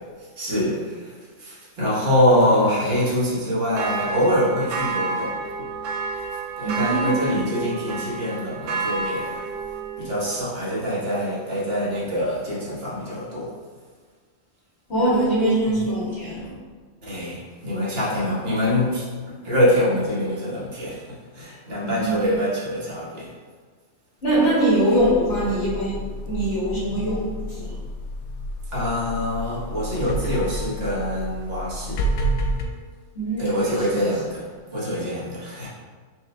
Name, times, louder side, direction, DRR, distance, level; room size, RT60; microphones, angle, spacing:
voice 1, 0.4-5.3 6.6-9.4 10.0-13.5 15.6-15.8 17.0-23.3 28.7-32.0 33.4-35.7, equal, 50° right, -7 dB, 1.3 m, -24 dB
sound 1, 3.7-10.4, right 4 dB, 75° right, 0.9 m, -30 dB
voice 2, 6.6-7.5 14.9-16.5 21.8-22.3 24.2-27.8 33.2-33.8, right 1 dB, 55° left, -8 dB, 1.8 m, -23 dB
sound 2, 25.0-32.6, right 1 dB, 85° left, 1.0 m, -30 dB
4.7 x 2.6 x 3.2 m, 1.5 s
omnidirectional pair, 1.3 m